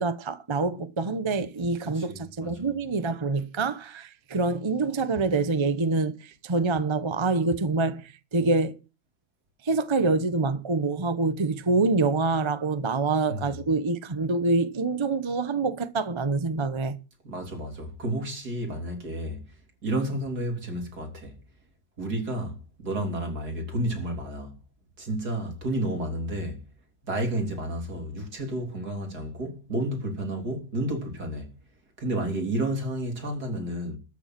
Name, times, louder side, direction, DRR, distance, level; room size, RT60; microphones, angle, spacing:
voice 1, 0.0-8.8 9.6-17.0, right 3 dB, 25° right, 0.8 m, -26 dB
voice 2, 1.8-2.7 13.3-13.4 17.2-19.4 19.8-21.4 22.0-24.6 25.0-26.6 27.0-31.6 32.0-34.0, right 1 dB, 75° right, 3.9 m, -31 dB
13.5 x 7.1 x 7.5 m
omnidirectional pair, 1.7 m